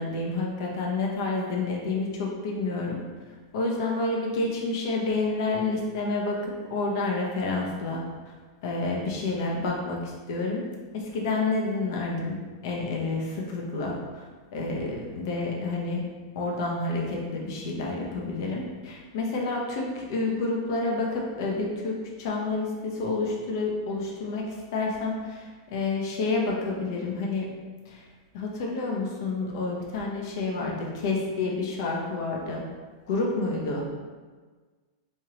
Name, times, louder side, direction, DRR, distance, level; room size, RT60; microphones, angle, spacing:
voice 1, 0.0-3.0 3.5-8.0 8.6-10.7 10.9-14.2 14.5-16.1 16.3-27.5 27.8-28.0 28.3-32.6 33.1-33.8, left 3 dB, 65° left, -1 dB, 0.9 m, -29 dB
3.6 x 3.2 x 2.9 m, 1.4 s
supercardioid pair, 140°, 2 cm